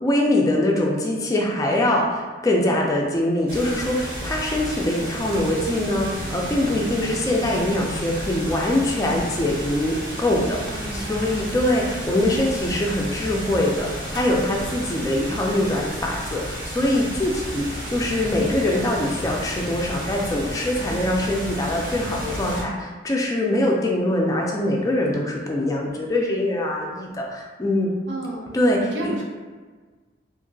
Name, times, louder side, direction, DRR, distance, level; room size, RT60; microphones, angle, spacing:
voice 1, 0.0-27.9 28.5-29.1, left 1 dB, 20° left, -1 dB, 0.3 m, -23 dB
sound 1, 3.5-22.6, right 1 dB, 50° right, 0.7 m, -32 dB
voice 2, 10.7-11.5 12.2-12.6 28.1-28.5 28.9-29.2, right 1 dB, 80° right, -2 dB, 0.6 m, -33 dB
2.8 x 2.5 x 2.6 m, 1.4 s
head